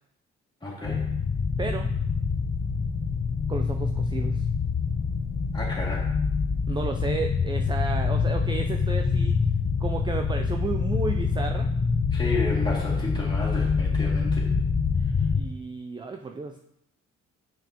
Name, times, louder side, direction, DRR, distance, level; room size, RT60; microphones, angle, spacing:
voice 1, 0.6-1.1 5.5-6.1 12.1-14.5, left 2 dB, 15° left, -5 dB, 2.5 m, -32 dB
sound 1, 0.8-15.4, left 5 dB, 45° left, 0.8 m, -26 dB
voice 2, 1.6-1.9 3.5-4.5 6.7-9.3 9.8-11.7 15.3-16.6, right 4 dB, 15° right, 5 dB, 0.4 m, -32 dB
7.2 x 5.7 x 3.0 m, 0.78 s
cardioid pair, 90°, 30 cm